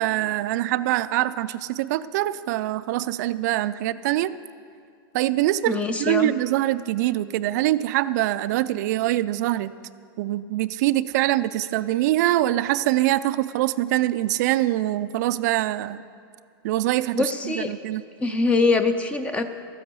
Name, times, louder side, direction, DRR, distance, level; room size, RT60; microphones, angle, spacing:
voice 1, 0.0-4.3 5.1-9.7 10.2-16.0 16.6-18.0, right 15 dB, 45° right, 15 dB, 0.4 m, -24 dB
voice 2, 5.7-6.3 17.1-17.7 18.2-19.4, left 3 dB, 10° left, 9 dB, 0.5 m, -23 dB
13.0 x 9.9 x 6.8 m, 2.4 s
supercardioid pair, 160°, 12 cm